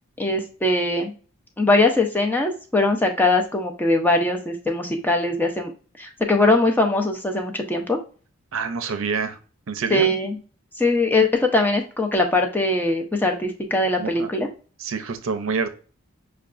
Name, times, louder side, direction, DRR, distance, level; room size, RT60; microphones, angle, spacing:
voice 1, 0.2-1.1 1.6-5.7 6.0-8.0 9.9-10.4 10.8-14.5, left 2 dB, 10° left, 3 dB, 0.5 m, -21 dB
voice 2, 8.5-9.4 9.7-10.1 14.0-14.3 14.8-15.7, right 5 dB, 70° right, 8 dB, 0.5 m, -27 dB
5.7 x 2.2 x 2.4 m, 0.39 s
head